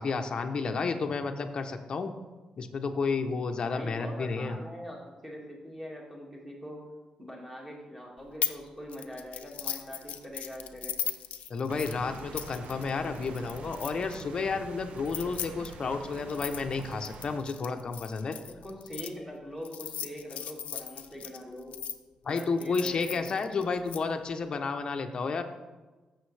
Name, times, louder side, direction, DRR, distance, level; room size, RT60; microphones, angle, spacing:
voice 1, 0.0-2.1 2.6-4.6 11.5-18.4 22.2-25.4, left 4 dB, 40° left, 5 dB, 0.7 m, -31 dB
voice 2, 3.6-6.8 7.2-11.0 18.5-21.8 22.3-23.7, equal, 10° right, -3 dB, 2.0 m, -43 dB
sound 1, 8.4-8.6 8.9-14.2 15.0-19.1 19.6-21.9 22.4-24.0, left 10 dB, 80° left, 0.5 m, -38 dB
sound 2, 11.7-17.4, right 5 dB, 70° right, 0.6 m, -45 dB
14.5 x 6.4 x 3.3 m, 1.2 s
wide cardioid pair, 160°, 2 cm